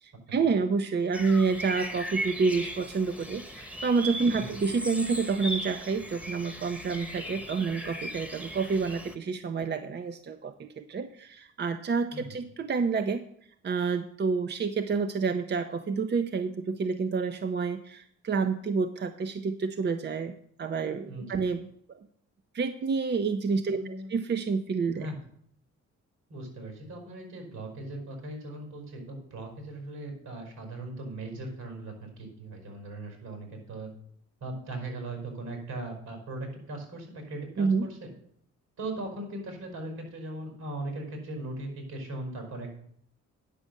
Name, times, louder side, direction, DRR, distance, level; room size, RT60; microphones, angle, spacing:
voice 1, 0.0-13.2 13.6-20.3 20.6-22.1 22.5-23.8 24.1-25.1 37.6-37.9, right 4 dB, 35° right, 9 dB, 0.6 m, -28 dB
sound 1, 1.1-9.1, equal, 5° right, 1.1 m, -38 dB
voice 2, 21.1-21.4 23.7-24.1 25.0-25.2 26.3-33.9 34.4-38.1 38.8-42.7, right 2 dB, 70° right, 3 dB, 5.2 m, -39 dB
9.9 x 6.2 x 6.7 m, 0.67 s
cardioid pair, 90°, 30 cm